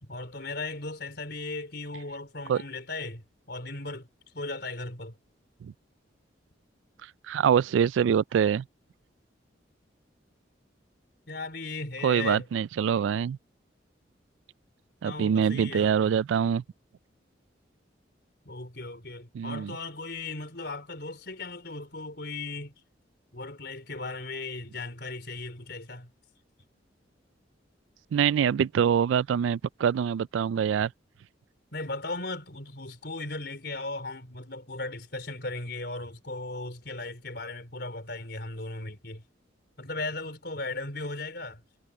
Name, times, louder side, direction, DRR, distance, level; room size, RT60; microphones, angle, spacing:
voice 1, 0.0-4.1 4.3-5.1 11.3-12.5 15.0-16.2 18.4-22.7 23.3-26.1 31.7-39.2 39.8-41.6, left 2 dB, 60° left, 4.3 m, -37 dB
voice 2, 7.3-8.6 12.0-13.4 15.0-16.6 19.3-19.8 28.1-30.9, right 8 dB, 85° right, 0.3 m, -24 dB
head